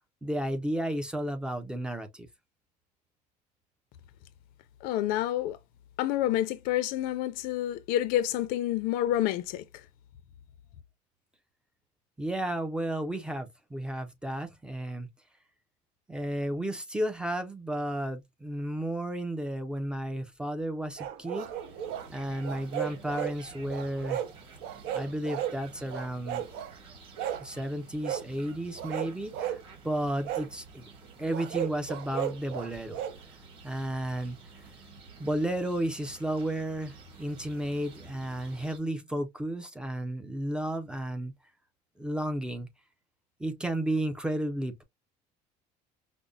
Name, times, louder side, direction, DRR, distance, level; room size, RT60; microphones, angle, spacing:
voice 1, 0.2-2.3 12.2-15.1 16.1-21.5 22.1-24.2 24.9-26.5 27.4-29.6 29.8-30.9 31.2-33.0 33.6-34.4 35.2-41.3 42.0-42.7 43.4-44.8, right 1 dB, 5° right, 0.4 m, -33 dB
voice 2, 4.8-5.6 6.0-9.6, left 13 dB, 70° left, 0.5 m, -28 dB
sound 1, 21.0-22.1 22.4-23.4 23.7-24.3 24.6-25.6 25.9-26.7 27.2-27.5 28.0-28.3 28.8-29.6 30.2-30.5 31.3-33.2, right 10 dB, 80° right, 0.8 m, -34 dB
sound 2, 21.2-38.8, right 4 dB, 35° right, 1.3 m, -51 dB
5.1 x 2.1 x 2.3 m
cardioid pair, 170°, 16 cm